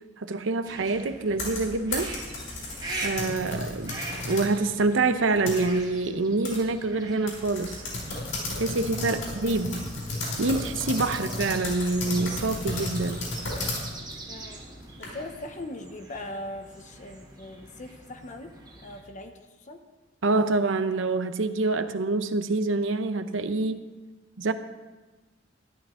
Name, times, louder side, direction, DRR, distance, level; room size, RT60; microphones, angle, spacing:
voice 1, 0.2-2.1 3.0-4.0 4.3-7.8 8.6-9.9 10.4-13.2 20.2-23.9 24.4-24.5, right 3 dB, 80° right, 10 dB, 0.7 m, -26 dB
sound 1, 0.6-19.0, right 2 dB, 20° right, 1.5 m, -43 dB
sound 2, 1.2-4.5 5.0-6.0 6.4-6.6 6.8-6.9 7.3-15.3, left 2 dB, 85° left, 4.9 m, -34 dB
voice 2, 14.3-14.6 15.0-19.8, left 1 dB, 40° left, 6 dB, 0.8 m, -40 dB
13.5 x 11.5 x 3.7 m, 1.2 s
head